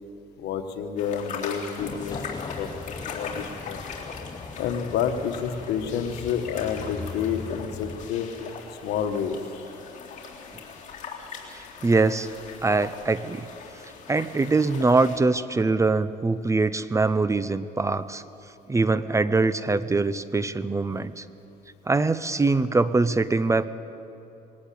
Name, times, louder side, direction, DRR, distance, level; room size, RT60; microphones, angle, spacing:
voice 1, 0.4-2.7 3.1-3.8 4.6-8.3 8.8-9.4, left 7 dB, 80° left, 7 dB, 1.5 m, -29 dB
sound 1, 1.0-15.2, left 5 dB, 45° left, 3.7 m, -40 dB
sound 2, 1.8-8.1, left 4 dB, 25° left, 0.9 m, -39 dB
voice 2, 11.5-12.3 12.6-13.5 14.1-18.2 18.7-21.2 21.9-23.6, right 3 dB, 15° right, 15 dB, 0.6 m, -23 dB
20.5 x 18.0 x 8.6 m, 2.8 s
cardioid pair, 110°, 17 cm